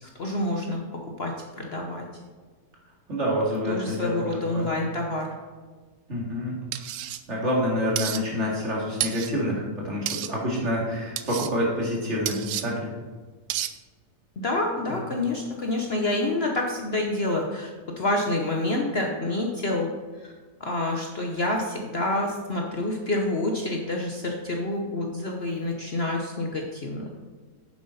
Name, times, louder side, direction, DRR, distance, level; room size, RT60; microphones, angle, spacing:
voice 1, 0.0-2.1 3.7-5.3 14.4-20.3 20.6-27.1, left 2 dB, 45° left, 1 dB, 1.0 m, -28 dB
voice 2, 3.1-4.2 4.5-4.7 6.1-6.5 7.3-12.9 14.9-15.0, equal, 45° right, -4 dB, 2.6 m, -27 dB
sound 1, 6.7-7.2 8.0-8.2 9.0-9.3 10.1-10.3 11.2-11.5 12.3-12.6 13.5-13.7, right 12 dB, 75° right, 1.1 m, -30 dB
9.6 x 7.6 x 4.2 m, 1.4 s
omnidirectional pair, 1.7 m